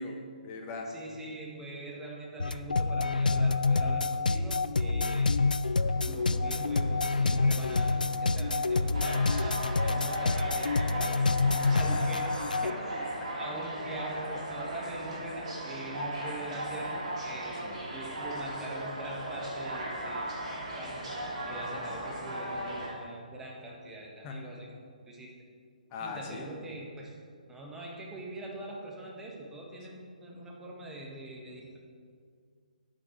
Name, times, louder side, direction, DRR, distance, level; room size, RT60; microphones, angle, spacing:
voice 1, 0.0-0.9 6.5-6.7 11.6-12.0 13.2-13.4 17.6-17.8 24.2-24.5 25.9-26.5, left 3 dB, 25° left, 1 dB, 1.3 m, -40 dB
voice 2, 0.9-5.4 6.1-17.6 17.9-20.3 20.8-21.1 21.5-24.7 25.1-25.3 26.0-27.2 27.5-31.8, right 1 dB, 5° right, -2 dB, 1.4 m, -43 dB
sound 1, 2.4-12.7, left 3 dB, 75° left, 0.4 m, -27 dB
sound 2, 5.8-22.9, right 1 dB, 50° right, 3.0 m, -38 dB
10.0 x 8.8 x 4.5 m, 2.2 s
figure-of-eight pair, 140°, 5 cm